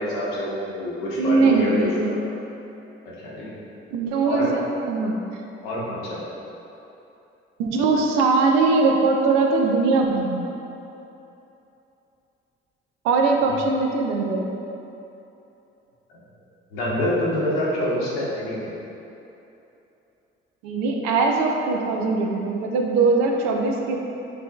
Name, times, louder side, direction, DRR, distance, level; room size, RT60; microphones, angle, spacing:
voice 1, 0.0-2.2 3.2-3.5 4.2-4.5 5.6-6.2 16.1-16.2 16.7-18.7, left 1 dB, 80° left, -6 dB, 1.0 m, -26 dB
voice 2, 1.2-2.1 3.9-4.6 4.9-5.2 7.6-10.4 13.0-14.5 20.6-24.0, right 3 dB, 70° right, 2 dB, 0.5 m, -21 dB
6.7 x 3.3 x 2.3 m, 3.0 s
hypercardioid pair, 45°, 29 cm